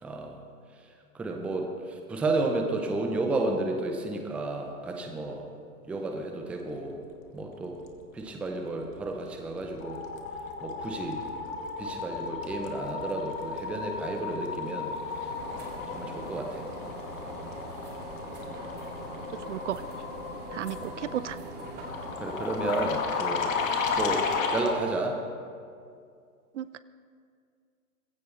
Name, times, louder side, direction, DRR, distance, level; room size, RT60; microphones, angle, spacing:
voice 1, 0.0-0.4 0.8-0.9 1.1-5.5 5.8-7.0 7.3-7.8 8.1-10.0 10.6-11.3 11.8-16.7 20.8-20.9 22.2-23.5 23.9-25.2, right 2 dB, 5° right, 3 dB, 0.5 m, -32 dB
sound 1, 8.9-9.3 9.5-24.8, left 5 dB, 60° left, 2.2 m, -34 dB
sound 2, 13.3-23.0, right 2 dB, 20° right, 2.3 m, -43 dB
voice 2, 19.5-19.8 20.5-21.4 26.6-26.8, right 11 dB, 50° right, 15 dB, 0.5 m, -34 dB
20.5 x 16.0 x 3.2 m, 2.3 s
hypercardioid pair, 125°, 46 cm